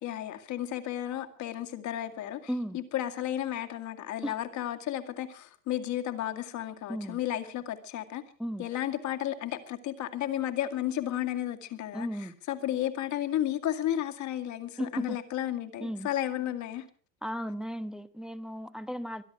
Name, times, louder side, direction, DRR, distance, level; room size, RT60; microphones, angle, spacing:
voice 1, 0.0-8.2 8.6-16.9, left 12 dB, 50° left, 2.1 m, -33 dB
voice 2, 2.5-2.8 4.2-4.3 6.9-7.2 8.4-8.7 11.9-12.3 14.8-15.2 15.8-16.1 17.2-19.2, equal, ahead, 1.1 m, -35 dB
24.0 x 10.5 x 4.7 m
hypercardioid pair, 80°, 38 cm